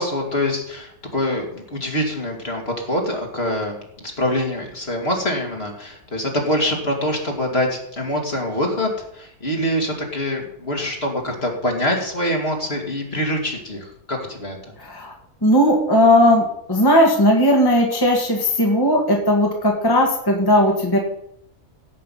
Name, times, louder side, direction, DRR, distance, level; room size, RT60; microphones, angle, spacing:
voice 1, 0.0-14.6, left 1 dB, 40° left, 1 dB, 2.8 m, -24 dB
voice 2, 14.8-15.1 15.4-21.0, left 1 dB, 15° left, 0 dB, 2.0 m, -17 dB
16.5 x 8.4 x 5.6 m, 0.74 s
omnidirectional pair, 1.6 m